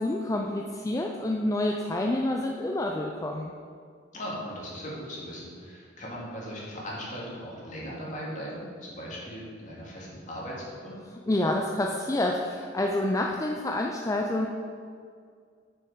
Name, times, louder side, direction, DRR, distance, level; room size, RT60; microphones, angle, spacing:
voice 1, 0.0-3.5 11.3-14.5, left 1 dB, 15° left, 1 dB, 0.4 m, -28 dB
voice 2, 4.1-10.9, equal, 40° left, -5 dB, 2.2 m, -38 dB
7.9 x 6.2 x 4.8 m, 2.1 s
head